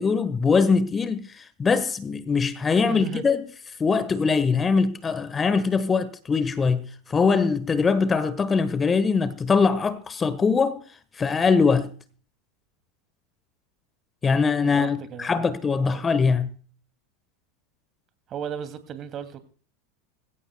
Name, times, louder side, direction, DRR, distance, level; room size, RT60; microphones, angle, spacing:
voice 1, 0.0-3.5 3.8-10.8 11.2-11.9 14.2-16.5, left 5 dB, 25° left, 1.3 m, -22 dB
voice 2, 2.7-3.2 14.6-15.4 15.8-16.0 18.3-19.4, right 8 dB, 40° right, 2.5 m, -36 dB
21.5 x 16.5 x 2.3 m
hypercardioid pair, 85°, 0 cm